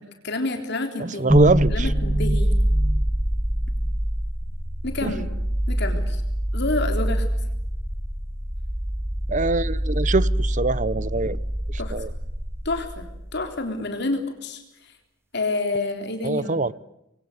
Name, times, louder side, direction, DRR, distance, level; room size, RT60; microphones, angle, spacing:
voice 1, 0.2-1.3 1.7-2.5 4.8-5.3 5.7-6.2 6.5-7.3 11.8-11.9 12.6-14.9 15.3-16.7, left 2 dB, 55° left, 3.8 m, -28 dB
voice 2, 1.0-1.9 5.0-5.1 9.3-11.4 11.7-12.1 16.2-16.7, right 3 dB, 40° right, 0.9 m, -24 dB
sound 1, 1.3-13.4, right 1 dB, 15° right, 2.2 m, -24 dB
27.5 x 23.5 x 8.1 m
head